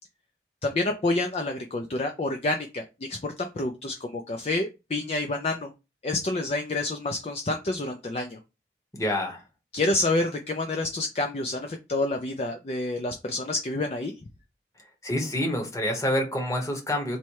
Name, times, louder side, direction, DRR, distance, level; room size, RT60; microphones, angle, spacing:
voice 1, 0.6-5.7 6.0-8.4 9.7-14.1, left 2 dB, 35° left, 0.4 m, -28 dB
voice 2, 9.0-9.4 15.0-17.2, left 1 dB, 15° left, 1.0 m, -27 dB
4.1 x 2.2 x 4.6 m
head